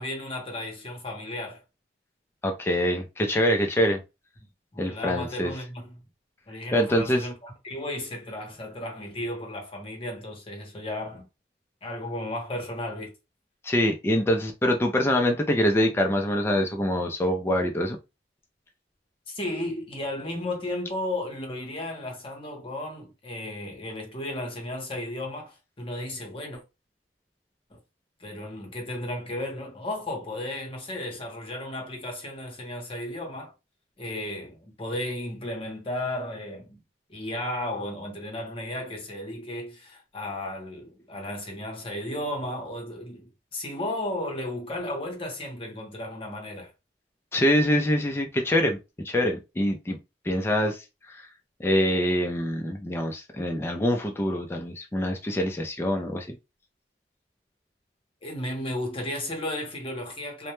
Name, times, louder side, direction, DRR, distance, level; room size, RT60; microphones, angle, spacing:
voice 1, 0.0-1.6 4.7-6.0 6.5-11.3 11.8-13.1 19.3-26.6 27.7-27.8 28.2-33.5 34.0-36.8 37.1-46.7 58.2-60.5, left 1 dB, 30° left, 0.7 m, -34 dB
voice 2, 2.4-4.0 4.8-5.5 6.7-7.2 13.6-18.0 47.3-48.8 49.0-50.0 50.3-50.8 51.1-51.2 51.6-56.4, equal, 15° left, 0.3 m, -24 dB
2.1 x 2.0 x 2.9 m
head